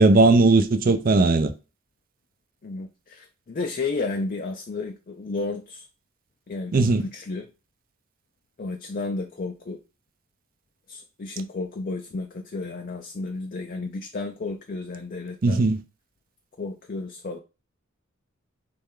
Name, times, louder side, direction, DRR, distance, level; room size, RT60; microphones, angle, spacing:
voice 1, 0.0-1.5 6.7-7.0 15.4-15.8, right 3 dB, 45° right, 0.5 m, -18 dB
voice 2, 2.6-5.9 6.5-7.5 8.6-9.8 10.9-15.6 16.6-17.4, left 3 dB, 45° left, 0.5 m, -32 dB
4.2 x 3.3 x 3.7 m
head